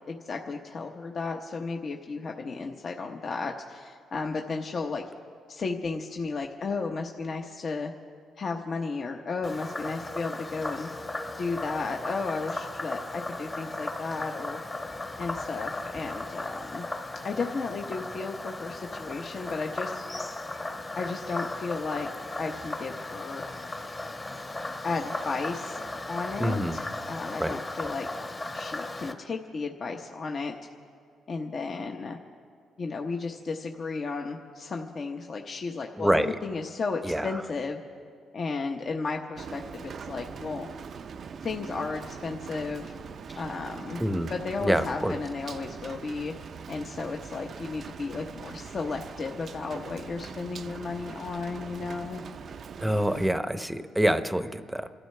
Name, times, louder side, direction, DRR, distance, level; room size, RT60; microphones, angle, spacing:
voice 1, 0.1-5.0 5.5-7.9 8.4-10.9 11.4-14.6 15.2-16.8 17.2-20.0 21.0-22.1 22.4-23.4 24.8-25.8 26.1-28.1 28.5-30.5 31.3-32.2 32.8-37.8 38.3-40.7 41.4-43.0 43.4-44.0 44.3-46.3 46.7-52.2, left 4 dB, 45° left, 2 dB, 1.0 m, -34 dB
Frog, 9.4-29.1, left 2 dB, 25° left, 1.2 m, -36 dB
voice 2, 26.4-26.8 27.4-27.6 36.0-36.4 37.0-37.3 44.0-44.3 44.6-45.2 52.8-54.9, right 1 dB, 5° right, 10 dB, 0.8 m, -26 dB
Rain, 39.4-53.3, right 6 dB, 55° right, 0.4 m, -42 dB
28.5 x 13.0 x 3.3 m, 2.1 s
cardioid pair, 90°, 0 cm